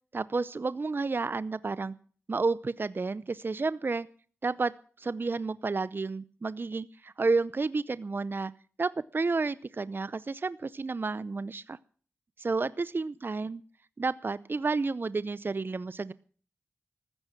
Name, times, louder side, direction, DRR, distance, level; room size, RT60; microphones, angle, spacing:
voice 1, 0.1-1.9 2.3-4.1 4.4-8.5 8.8-11.8 12.4-13.6 14.0-16.1, right 3 dB, 45° right, 18 dB, 0.6 m, -31 dB
14.5 x 13.5 x 6.0 m, 0.43 s
cardioid pair, 45°, 5 cm